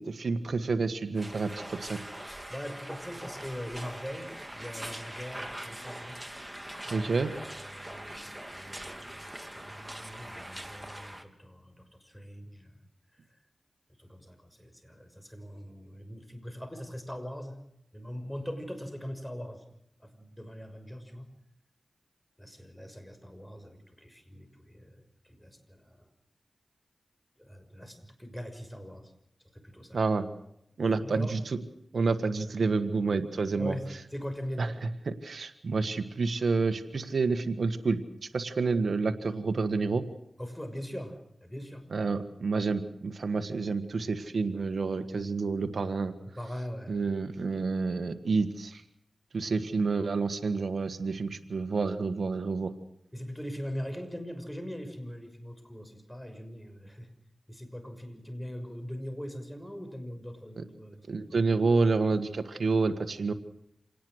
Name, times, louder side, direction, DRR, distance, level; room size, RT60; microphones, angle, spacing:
voice 1, 0.0-2.0 6.9-7.3 29.9-30.2 30.8-31.6 31.9-33.7 34.6-34.7 35.1-38.0 38.3-40.0 41.9-46.1 46.9-48.8 49.3-52.7 61.1-63.3, right 4 dB, 75° right, 10 dB, 1.7 m, -29 dB
sound 1, 1.1-11.2, right 1 dB, 10° right, 3.0 m, -42 dB
voice 2, 2.5-6.2 6.9-12.8 13.1-13.4 14.0-17.6 17.9-19.6 20.0-21.3 22.4-26.1 27.4-29.1 29.5-30.0 30.9-31.4 33.6-34.8 40.4-41.9 46.3-47.1 53.1-57.1 57.5-61.1 61.4-61.5, equal, 10° left, 8 dB, 6.2 m, -41 dB
27.5 x 19.0 x 6.5 m, 0.75 s
cardioid pair, 45°, 0 cm